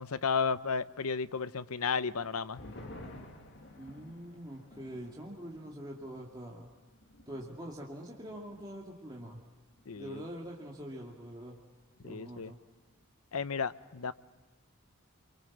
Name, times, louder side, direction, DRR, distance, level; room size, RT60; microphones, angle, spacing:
voice 1, 0.0-2.6 9.9-10.2 12.0-12.5 13.3-14.1, left 5 dB, 80° left, 0.8 m, -33 dB
sound 1, 2.0-8.9 9.2-9.3 9.7-10.2, left 1 dB, 50° left, 2.4 m, -53 dB
voice 2, 3.8-6.7 7.3-9.4 10.0-11.6 12.0-12.6, equal, 20° right, 2.3 m, -44 dB
30.0 x 24.0 x 7.2 m
head